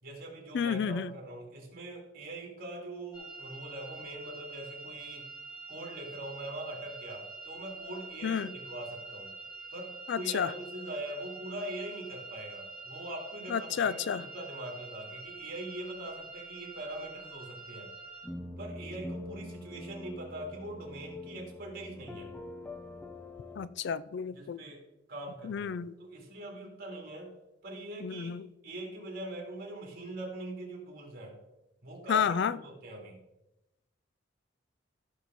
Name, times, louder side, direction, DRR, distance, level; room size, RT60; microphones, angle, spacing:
voice 1, 0.0-5.2 5.7-9.3 9.7-17.9 18.6-22.4 24.3-24.8 25.1-27.3 27.6-28.4 28.6-31.4 31.8-33.2, right 1 dB, 50° right, -1 dB, 3.3 m, -42 dB
voice 2, 0.5-1.1 8.2-8.5 10.1-10.5 13.5-14.2 23.6-24.6 25.4-25.9 28.0-28.5 32.1-32.6, left 7 dB, 65° left, 17 dB, 0.4 m, -31 dB
sound 1, 3.1-18.3, right 3 dB, 25° left, 2.8 m, -46 dB
sound 2, 18.2-23.7, left 1 dB, 10° left, 0.7 m, -44 dB
15.0 x 6.3 x 4.1 m, 0.96 s
head